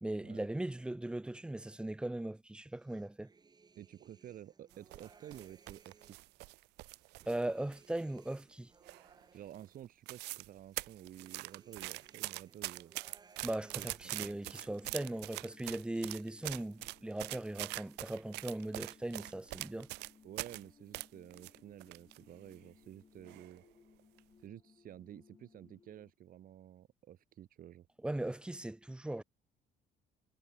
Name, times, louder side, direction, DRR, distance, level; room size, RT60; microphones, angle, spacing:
voice 1, 0.0-3.3 7.3-8.7 13.4-19.9 28.0-29.2, right 1 dB, 5° right, 0.5 m, -39 dB
sound 1, 2.7-6.3 6.8-10.2 10.7-15.5 15.8-16.7 17.0-17.8, right 4 dB, 25° right, 1.6 m, -65 dB
voice 2, 3.7-6.2 9.3-13.0 13.7-14.7 20.2-23.6 24.4-27.9, right 11 dB, 55° right, 1.7 m, -52 dB
sound 2, 4.7-7.4 7.7-8.5 8.9-9.2 9.5-9.6 9.9-10.5 10.8-20.6 20.9-22.2 22.5-22.6 23.3-23.6 24.0-24.2, right 21 dB, 90° right, 0.7 m, -43 dB
sound 3, 14.2-26.1, left 5 dB, 30° left, 2.0 m, -65 dB
cardioid pair, 110°, 17 cm